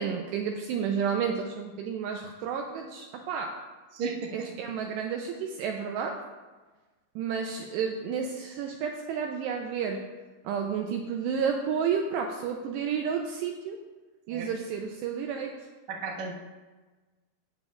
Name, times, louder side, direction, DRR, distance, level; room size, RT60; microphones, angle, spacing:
voice 1, 0.0-3.5 4.3-6.2 7.2-10.0 10.4-13.8 14.3-15.6, right 6 dB, 80° right, 2 dB, 2.6 m, -31 dB
voice 2, 3.9-4.6 14.3-14.5 15.9-16.3, right 4 dB, 60° right, -4 dB, 2.0 m, -34 dB
15.0 x 9.2 x 2.5 m, 1.3 s
omnidirectional pair, 5.4 m